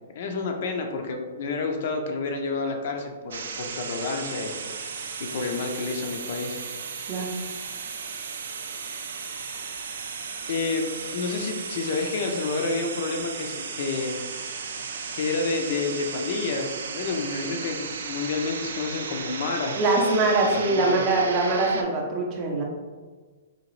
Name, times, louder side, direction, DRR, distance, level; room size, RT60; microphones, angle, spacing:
voice 1, 0.1-4.5 5.2-6.6 10.5-14.2 15.1-19.8 20.5-21.0, left 4 dB, 45° left, 3 dB, 0.4 m, -29 dB
sound 1, 3.3-21.8, right 5 dB, 75° right, 0.4 m, -35 dB
voice 2, 19.8-22.6, right 2 dB, 20° right, 0 dB, 0.5 m, -23 dB
3.8 x 2.8 x 3.1 m, 1.4 s
hypercardioid pair, 175°, 0 cm